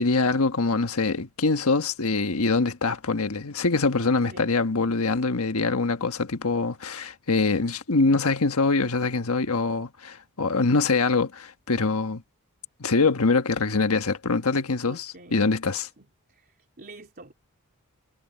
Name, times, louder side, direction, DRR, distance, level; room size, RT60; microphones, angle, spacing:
voice 1, 0.0-12.2 12.8-15.9, left 3 dB, 75° left, 1.4 m, -24 dB
voice 2, 14.8-15.4 16.0-16.1 16.3-16.4 16.8-17.3, right 2 dB, 45° right, 3.6 m, -46 dB
head